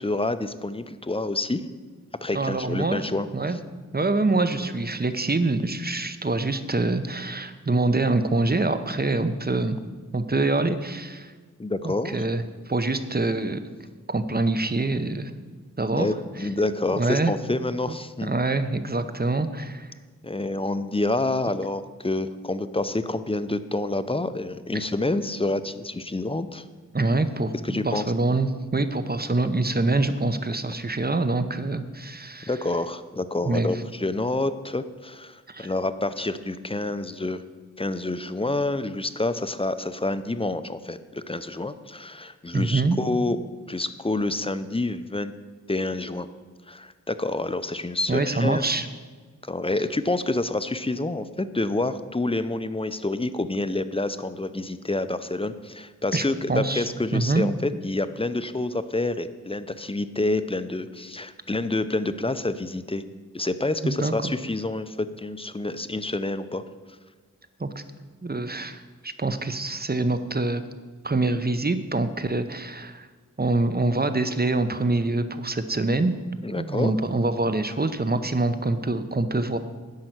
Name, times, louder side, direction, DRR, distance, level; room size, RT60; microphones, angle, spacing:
voice 1, 0.0-1.6 2.2-3.3 11.6-12.2 16.0-18.3 20.2-26.6 27.6-28.0 32.5-37.4 37.8-43.4 43.7-45.3 45.7-46.3 46.7-48.6 49.4-63.0 63.3-66.6 76.4-76.9, left 2 dB, 15° left, 12 dB, 0.5 m, -28 dB
voice 2, 2.3-3.0 3.3-3.6 3.9-9.8 10.1-11.3 11.8-13.6 14.1-15.3 15.8-16.1 16.4-16.5 17.0-17.3 17.9-18.0 18.2-19.9 24.7-24.8 26.9-32.5 33.4-33.8 35.5-35.7 42.5-43.0 48.1-48.9 56.1-56.9 57.1-57.5 63.8-64.3 67.6-67.7 68.2-70.6 71.0-73.1 73.4-76.1 76.6-79.6, right 2 dB, 30° right, 10 dB, 0.7 m, -25 dB
10.5 x 5.5 x 7.9 m, 1.4 s
wide cardioid pair, 50°, 32 cm